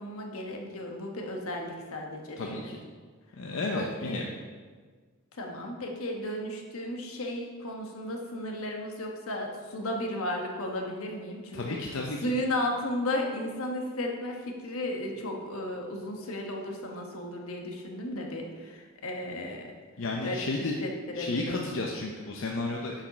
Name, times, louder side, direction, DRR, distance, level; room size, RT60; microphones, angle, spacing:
voice 1, 0.0-2.7 3.7-4.3 5.3-11.9 12.2-19.7 20.2-21.6, left 1 dB, 85° left, 2 dB, 1.2 m, -34 dB
voice 2, 2.4-2.8 3.4-4.3 11.5-12.3 20.0-20.7 21.2-23.0, left 2 dB, 60° left, 0 dB, 0.7 m, -32 dB
7.2 x 5.1 x 5.8 m, 1.5 s
head